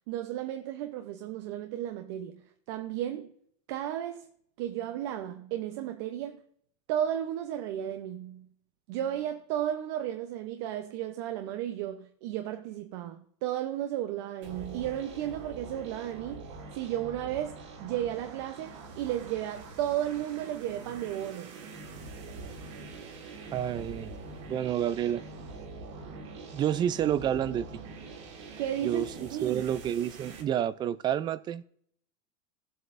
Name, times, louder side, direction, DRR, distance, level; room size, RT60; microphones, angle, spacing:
voice 1, 0.1-2.4 2.7-3.3 3.7-4.3 4.6-6.4 6.9-8.5 8.9-21.6 28.6-29.6, right 11 dB, 70° right, 0.8 m, -34 dB
sound 1, 14.4-30.4, right 3 dB, 90° right, 2.5 m, -44 dB
voice 2, 23.5-24.1 24.5-25.2 26.5-27.7 28.8-31.6, right 10 dB, 30° right, 0.4 m, -29 dB
16.0 x 7.9 x 2.6 m
supercardioid pair, 140°, 15 cm